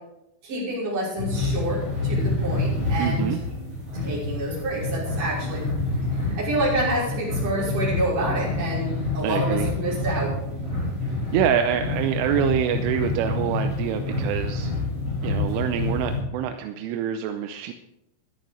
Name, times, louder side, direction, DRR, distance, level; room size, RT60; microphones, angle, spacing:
voice 1, 0.4-3.3 4.0-5.7 6.1-10.3, right 1 dB, 40° right, -6 dB, 6.9 m, -28 dB
sound 1, 1.2-16.2, left 2 dB, 15° right, 6.2 m, -28 dB
voice 2, 3.0-3.4 9.2-9.7 11.3-14.7 15.2-17.7, right 9 dB, 85° right, 7 dB, 3.2 m, -26 dB
14.0 x 11.5 x 5.1 m, 0.88 s
omnidirectional pair, 5.7 m